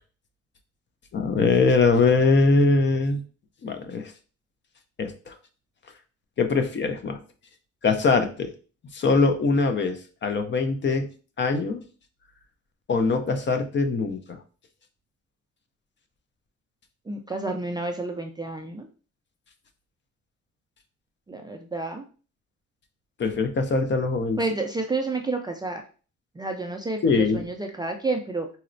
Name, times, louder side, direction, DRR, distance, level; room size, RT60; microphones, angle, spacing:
voice 1, 1.1-3.2 3.6-4.1 5.0-5.3 6.4-7.2 7.8-8.5 8.9-11.1 11.4-11.8 12.9-14.4 23.2-24.4 27.0-27.4, left 4 dB, 40° left, 6 dB, 0.5 m, -22 dB
voice 2, 17.1-18.9 21.3-22.0 24.4-25.8 26.4-28.6, right 3 dB, 15° right, 3 dB, 0.3 m, -30 dB
4.1 x 2.0 x 2.6 m, 0.38 s
cardioid pair, 90°, 30 cm